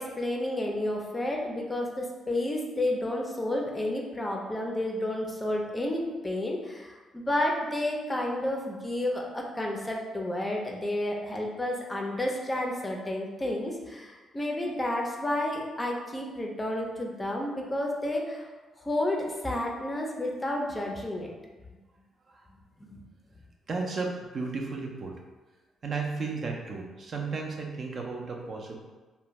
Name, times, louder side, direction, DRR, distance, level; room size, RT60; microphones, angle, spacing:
voice 1, 0.0-18.5 18.8-21.3 22.8-23.0, left 1 dB, 20° left, -1 dB, 0.5 m, -31 dB
voice 2, 23.7-25.2 25.8-28.8, right 4 dB, 50° right, 0 dB, 0.4 m, -34 dB
2.5 x 2.1 x 3.0 m, 1.3 s
cardioid pair, 90°, 0 cm